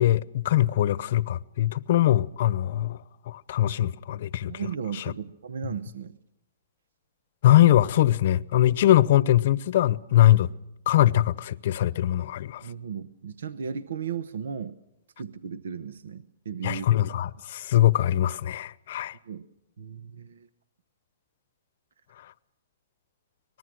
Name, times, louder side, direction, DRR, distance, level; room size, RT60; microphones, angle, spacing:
voice 1, 0.0-3.0 3.3-4.5 4.9-5.0 7.4-10.5 10.9-12.6 16.6-19.2, left 13 dB, 55° left, 0.8 m, -22 dB
voice 2, 4.5-6.1 12.6-14.8 15.2-17.1 19.2-19.5 19.8-20.5, right 7 dB, 80° right, 0.9 m, -35 dB
24.5 x 20.0 x 6.3 m
hypercardioid pair, 145°, 0 cm